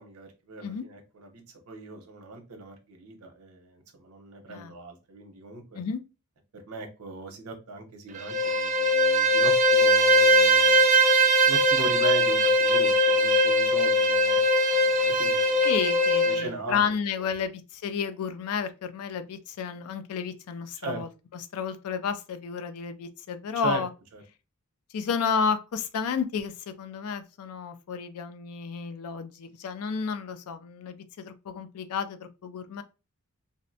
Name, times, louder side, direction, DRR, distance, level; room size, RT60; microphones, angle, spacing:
voice 1, 0.0-5.8 6.5-10.8 11.5-14.5 14.8-15.7 16.2-17.3 20.8-21.0 23.6-23.8 24.1-24.2, right 2 dB, 70° right, 0.7 m, -39 dB
Bowed string instrument, 8.2-16.5, equal, 35° right, 0.4 m, -21 dB
voice 2, 15.6-23.9 24.9-32.8, left 6 dB, 70° left, 0.4 m, -31 dB
2.6 x 2.1 x 2.6 m
head